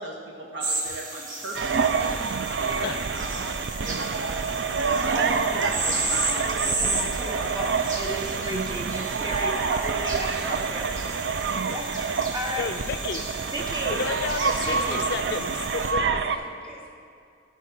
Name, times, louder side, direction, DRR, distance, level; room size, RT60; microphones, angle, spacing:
voice 1, 0.0-5.1 5.6-7.6, right 1 dB, 90° right, -2 dB, 1.7 m, -37 dB
sound 1, 0.6-15.9, right 2 dB, 45° right, 1.1 m, -34 dB
sound 2, 1.5-16.4, right 5 dB, 65° right, 0.4 m, -27 dB
voice 2, 5.1-5.7 6.8-10.9 11.6-11.9 12.3-12.7 13.5-14.0 14.7-15.0, right 1 dB, 20° right, 0 dB, 1.0 m, -33 dB
voice 3, 12.6-13.2 13.9-16.0, left 5 dB, 60° left, 10 dB, 0.4 m, -31 dB
voice 4, 13.6-14.9 15.8-16.9, equal, 5° left, -3 dB, 1.5 m, -45 dB
14.0 x 5.4 x 4.4 m, 2.3 s
head